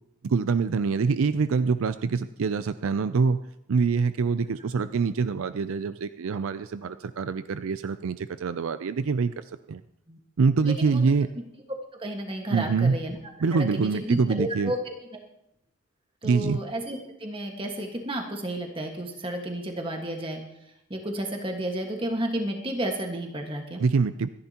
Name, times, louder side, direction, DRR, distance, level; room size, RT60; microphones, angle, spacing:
voice 1, 0.2-3.4 3.7-9.8 10.4-11.3 12.5-13.0 13.4-14.7 16.2-16.6 23.8-24.3, right 5 dB, 70° right, 12 dB, 0.4 m, -25 dB
voice 2, 10.6-11.0 11.4-11.5 11.9-13.2 13.5-15.2 16.2-20.4 20.9-23.8, right 1 dB, 25° right, 2 dB, 1.6 m, -32 dB
26.5 x 10.5 x 2.9 m, 0.85 s
head